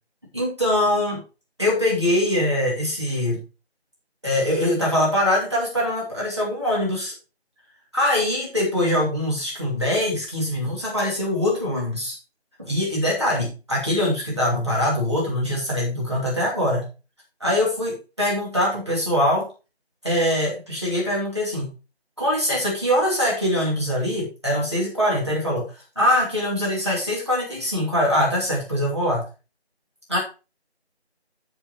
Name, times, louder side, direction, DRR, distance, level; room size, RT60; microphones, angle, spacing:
voice 1, 0.3-1.2 1.6-3.4 4.2-7.1 7.9-12.2 12.6-16.9 17.4-19.5 20.0-21.7 22.2-25.6 26.0-29.2 30.1-30.2, left 1 dB, 25° right, -4 dB, 2.6 m, -23 dB
14.0 x 5.5 x 3.0 m, 0.32 s
figure-of-eight pair, 175°, 33 cm